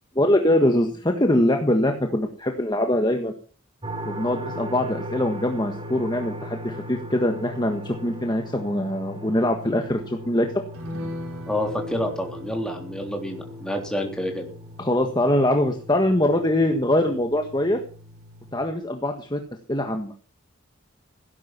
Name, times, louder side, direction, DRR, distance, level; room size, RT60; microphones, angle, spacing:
voice 1, 0.1-3.3 4.0-10.5 14.8-17.8 18.5-19.4 19.7-20.1, left 1 dB, 20° left, 4 dB, 1.5 m, -23 dB
sound 1, 3.8-18.6, equal, 25° right, 3.1 m, -39 dB
sound 2, 10.7-17.5 17.8-17.9 18.3-18.4, left 2 dB, 85° right, 4.5 m, -40 dB
voice 2, 11.5-14.5, equal, 5° left, 1 dB, 3.5 m, -28 dB
17.0 x 11.0 x 6.0 m, 0.39 s
head